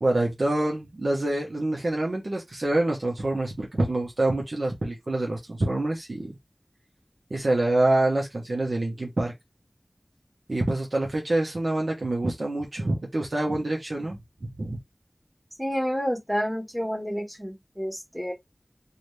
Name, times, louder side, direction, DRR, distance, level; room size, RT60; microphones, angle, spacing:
voice 1, 0.0-6.4 7.3-9.3 10.5-14.8, right 2 dB, 85° right, 0.8 m, -26 dB
voice 2, 15.6-18.3, equal, 5° right, 1.3 m, -29 dB
2.6 x 2.4 x 3.1 m
wide cardioid pair, 45°, 0 cm